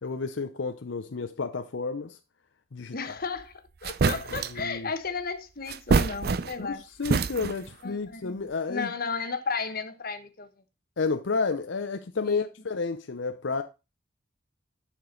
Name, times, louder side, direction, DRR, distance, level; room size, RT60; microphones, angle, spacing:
voice 1, 0.0-2.2 2.7-3.2 4.1-4.2 4.5-4.9 6.6-8.9 11.0-13.6, left 4 dB, 80° left, 0.7 m, -31 dB
voice 2, 2.9-6.8 7.8-8.4 8.7-10.5 12.3-12.5, left 4 dB, 50° left, 1.1 m, -34 dB
sound 1, 3.4-3.5 3.8-4.7 5.7-6.7 7.0-7.7, right 4 dB, 55° right, 0.5 m, -26 dB
9.6 x 6.2 x 3.9 m
head